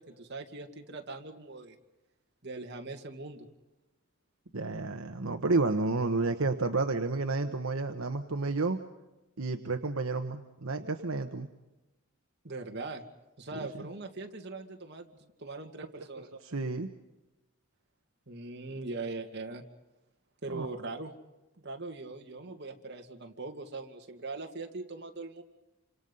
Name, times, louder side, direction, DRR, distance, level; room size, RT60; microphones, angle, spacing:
voice 1, 0.0-1.8 2.4-3.5 12.4-13.0 13.4-16.3 18.3-19.6 20.4-21.1 21.6-25.4, right 3 dB, 50° right, 3 dB, 2.2 m, -41 dB
voice 2, 4.5-8.8 9.4-11.5 16.2-16.9 20.5-20.7, right 3 dB, 75° right, 6 dB, 1.2 m, -31 dB
28.0 x 26.5 x 5.6 m, 1.0 s
head